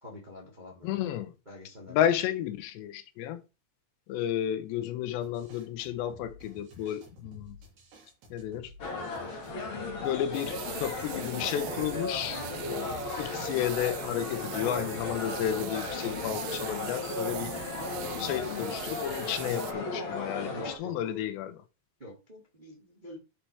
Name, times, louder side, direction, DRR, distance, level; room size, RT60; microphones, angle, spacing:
voice 1, 0.0-0.9 1.4-2.0 20.4-21.0 22.0-23.2, left 1 dB, 20° right, 1.1 m, -46 dB
voice 2, 0.8-1.3 1.9-3.4 4.1-7.6 8.3-8.7 10.0-17.6 18.2-21.6, left 11 dB, 90° left, 3.0 m, -32 dB
sound 1, 5.2-11.5, equal, 65° right, 4.7 m, -53 dB
sound 2, 8.8-20.8, left 3 dB, 75° left, 1.1 m, -36 dB
sound 3, 10.3-19.7, right 14 dB, 85° right, 2.8 m, -41 dB
10.0 x 4.4 x 4.9 m
omnidirectional pair, 5.0 m